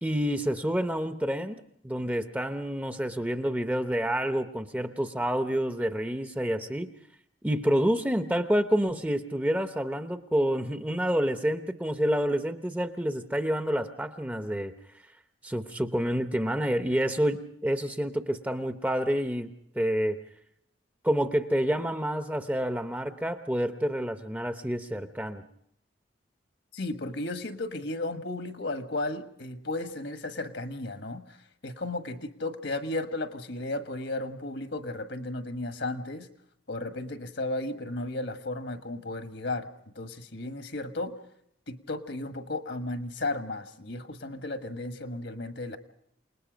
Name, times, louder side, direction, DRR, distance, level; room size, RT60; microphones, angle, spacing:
voice 1, 0.0-6.9 7.4-14.7 15.4-20.2 21.0-25.4, equal, 10° right, 8 dB, 0.7 m, -28 dB
voice 2, 26.7-31.4 31.6-36.3 36.7-39.7 39.9-41.2 41.7-45.8, left 2 dB, 65° left, 8 dB, 1.4 m, -34 dB
28.5 x 19.5 x 5.1 m, 0.71 s
head